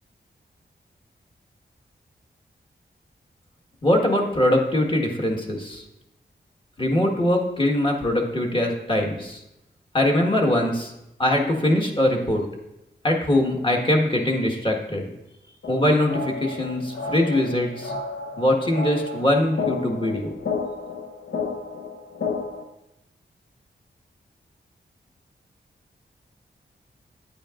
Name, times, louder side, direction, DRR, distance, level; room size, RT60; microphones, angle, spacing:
voice 1, 3.8-5.8 6.8-9.4 9.9-10.9 11.2-12.4 13.0-15.0 15.7-17.9 18.4-20.3, left 1 dB, 25° left, 0 dB, 1.6 m, -22 dB
sound 1, 15.6-22.6, left 4 dB, 70° left, 1.0 m, -32 dB
9.8 x 8.7 x 2.5 m, 0.90 s
wide cardioid pair, 80°, 19 cm